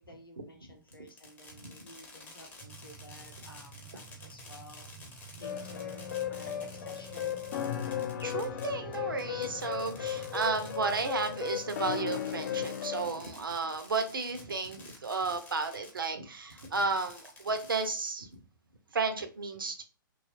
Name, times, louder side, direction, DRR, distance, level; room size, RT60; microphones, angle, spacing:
voice 1, 0.1-4.9 5.4-7.5, left 1 dB, 85° left, 3 dB, 0.8 m, -53 dB
Fireworks, 0.9-16.1 16.5-18.3, left 3 dB, 15° left, 0.7 m, -51 dB
sound 1, 2.6-11.1, right 7 dB, 20° right, 0.5 m, -51 dB
sound 2, 5.4-13.1, left 10 dB, 50° left, 0.4 m, -36 dB
voice 2, 8.1-18.3 18.9-19.8, right 4 dB, 75° right, 7 dB, 0.5 m, -33 dB
2.9 x 2.3 x 2.9 m, 0.36 s
figure-of-eight pair, 115°, 12 cm